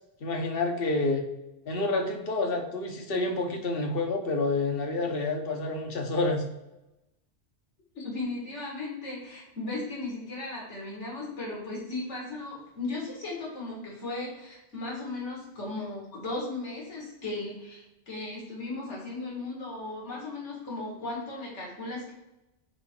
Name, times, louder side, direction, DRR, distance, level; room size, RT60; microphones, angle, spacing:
voice 1, 0.2-1.2 1.7-6.4, left 2 dB, 55° left, 3 dB, 1.3 m, -28 dB
voice 2, 7.9-22.1, left 2 dB, 75° left, -4 dB, 2.5 m, -36 dB
9.6 x 3.5 x 4.7 m, 0.96 s
omnidirectional pair, 1.2 m